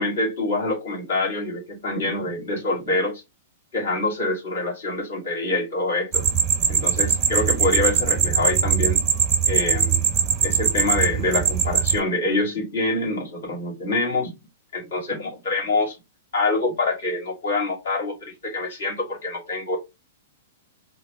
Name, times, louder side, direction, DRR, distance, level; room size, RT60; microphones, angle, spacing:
voice 1, 0.0-3.2 3.7-6.3 6.7-9.0 9.5-10.0 10.4-14.3 14.7-16.0 16.3-19.8, left 2 dB, 65° left, -3 dB, 2.6 m, -25 dB
sound 1, 6.1-12.0, right 7 dB, 30° right, 0.9 m, -21 dB
4.3 x 2.0 x 3.7 m, 0.23 s
figure-of-eight pair, 105°, 0 cm